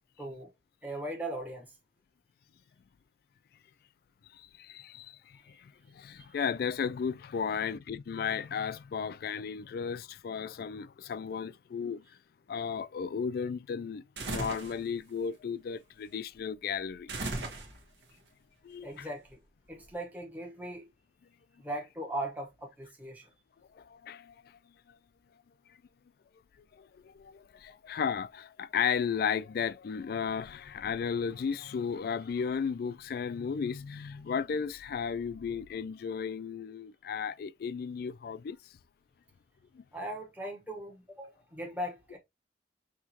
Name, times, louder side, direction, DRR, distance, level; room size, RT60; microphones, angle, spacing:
voice 1, 0.2-0.5 0.8-1.8 6.2-6.3 17.5-17.6 18.8-19.4 19.7-20.9 21.6-23.3 39.9-42.2, right 1 dB, 10° right, 1.1 m, -39 dB
voice 2, 4.3-12.0 12.5-17.3 18.6-19.1 23.8-24.3 26.7-38.6 39.7-39.8, left 6 dB, 55° left, 0.3 m, -34 dB
sound 1, 14.2-14.8 17.1-18.0, right 2 dB, 75° right, 1.4 m, -36 dB
5.6 x 2.9 x 2.9 m
head